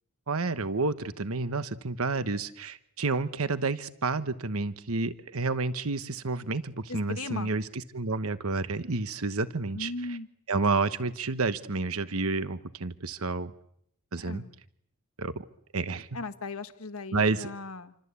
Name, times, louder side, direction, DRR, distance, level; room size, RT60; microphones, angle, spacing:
voice 1, 0.3-7.6 7.9-9.9 10.5-13.5 14.1-14.4 15.2-15.3 15.7-16.1 17.1-17.5, right 3 dB, 80° right, 12 dB, 1.2 m, -30 dB
voice 2, 6.9-7.5 9.7-10.3 14.2-14.5 16.1-18.0, left 3 dB, 80° left, 10 dB, 1.5 m, -37 dB
28.0 x 25.5 x 8.3 m, 0.70 s
head